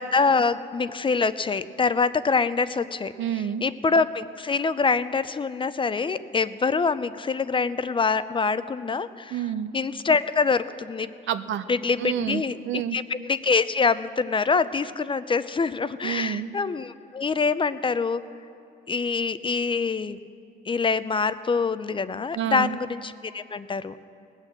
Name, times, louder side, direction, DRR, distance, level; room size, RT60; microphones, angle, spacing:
voice 1, 0.0-9.4 9.7-11.1 11.7-18.2 18.9-20.2 20.7-24.0, left 4 dB, 25° left, 14 dB, 0.4 m, -25 dB
voice 2, 3.2-3.6 9.3-9.7 11.3-11.6 12.0-13.0 16.0-16.5 22.3-22.8, right 9 dB, 70° right, 12 dB, 0.6 m, -28 dB
19.0 x 6.4 x 7.5 m, 2.6 s
cardioid pair, 90°, 20 cm